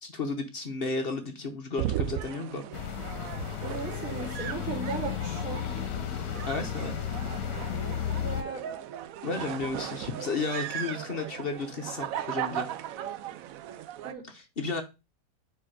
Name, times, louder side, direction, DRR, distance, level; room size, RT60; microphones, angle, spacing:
voice 1, 0.0-2.7 6.5-6.9 9.2-12.7 14.3-14.8, left 3 dB, 45° left, 6 dB, 0.8 m, -33 dB
sound 1, 1.8-14.1, right 11 dB, 70° right, 0.8 m, -37 dB
sound 2, 2.7-8.4, left 10 dB, 65° left, 1.3 m, -33 dB
voice 2, 3.6-5.7 8.1-8.6 14.0-14.2, right 5 dB, 50° right, -2 dB, 2.9 m, -37 dB
4.8 x 4.6 x 4.9 m, 0.26 s
omnidirectional pair, 1.9 m